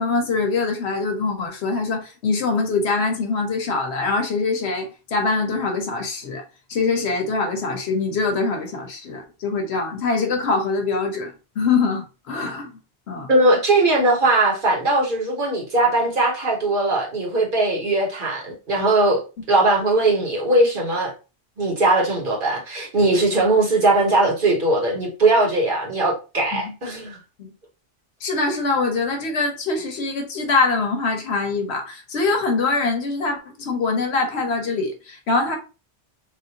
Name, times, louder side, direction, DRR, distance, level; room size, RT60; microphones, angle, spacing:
voice 1, 0.0-6.4 6.7-12.7 13.1-13.3 26.6-26.7 27.4-27.5 28.2-35.6, left 4 dB, 70° left, 1.0 m, -23 dB
voice 2, 13.3-19.2 19.5-21.1 21.6-27.2, right 2 dB, 50° right, 1.2 m, -19 dB
3.4 x 2.5 x 2.8 m
omnidirectional pair, 1.1 m